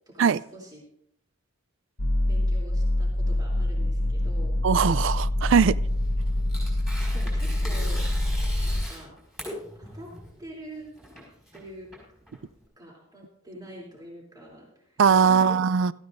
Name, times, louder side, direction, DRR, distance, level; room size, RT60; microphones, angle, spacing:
voice 1, 0.1-0.8 2.2-4.5 7.1-8.1 8.6-9.1 9.7-10.1 10.4-11.2 11.5-11.9 12.8-15.0 15.3-15.6, right 1 dB, 20° right, 3.2 m, -44 dB
sound 1, 2.0-8.8, left 1 dB, 90° left, 1.4 m, -25 dB
voice 2, 4.6-5.8 15.0-15.9, right 6 dB, 60° right, 0.4 m, -20 dB
Tearing, 5.8-12.6, equal, ahead, 5.1 m, -41 dB
17.5 x 14.0 x 2.6 m
head